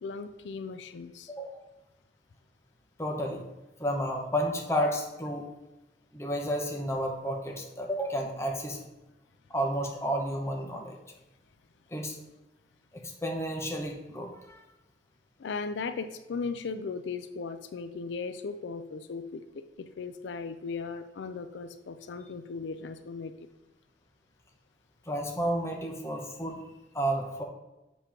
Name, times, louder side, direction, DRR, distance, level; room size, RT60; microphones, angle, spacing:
voice 1, 0.0-1.3 15.4-23.5, left 4 dB, 80° left, 9 dB, 0.4 m, -37 dB
voice 2, 1.3-1.6 3.0-3.4 3.8-5.5 6.1-8.8 9.5-11.0 11.9-12.2 12.9-14.6 25.1-26.6 26.9-27.4, equal, 15° left, 1 dB, 0.8 m, -31 dB
6.9 x 3.0 x 5.8 m, 1.0 s
head